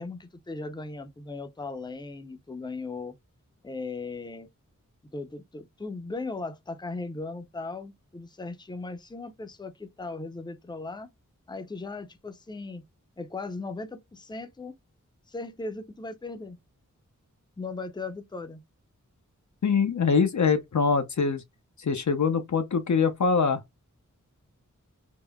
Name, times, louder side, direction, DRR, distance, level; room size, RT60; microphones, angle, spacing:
voice 1, 0.0-3.1 3.6-4.5 5.1-11.1 11.5-12.8 13.2-14.7 15.3-16.6 17.6-18.6, left 3 dB, 15° left, 0.5 m, -37 dB
voice 2, 19.6-21.4 21.8-23.6, left 5 dB, 65° left, 0.5 m, -23 dB
3.5 x 2.1 x 2.2 m
wide cardioid pair, 40°, 32 cm